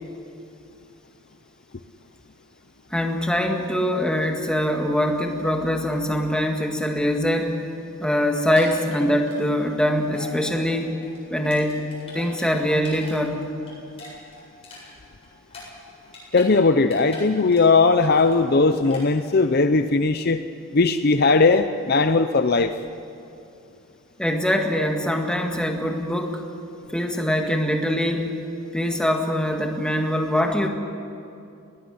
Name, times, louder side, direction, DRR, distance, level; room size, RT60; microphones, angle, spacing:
voice 1, 2.9-7.6 8.0-11.0 11.3-11.8 12.1-13.5 24.2-26.4 26.9-28.3 28.7-30.7, equal, 5° left, 2 dB, 1.8 m, -23 dB
sound 1, 8.4-9.8 10.1-10.3 10.7-13.1 13.4-16.5 16.8-17.8 18.0-18.4 18.8-19.0, left 2 dB, 25° left, 8.0 m, -43 dB
voice 2, 16.3-20.4 20.7-22.7, left 3 dB, 45° left, 9 dB, 0.6 m, -18 dB
20.5 x 18.5 x 10.0 m, 2.5 s
head